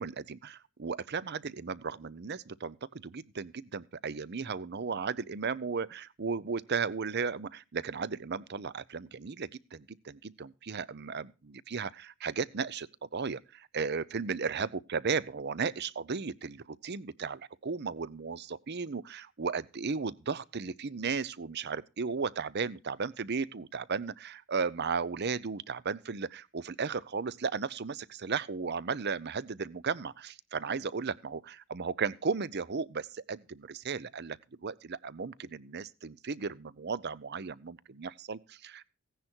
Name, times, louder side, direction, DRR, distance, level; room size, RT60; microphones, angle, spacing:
voice 1, 0.0-38.8, right 5 dB, 50° right, 0.7 m, -35 dB
16.5 x 10.0 x 4.5 m
head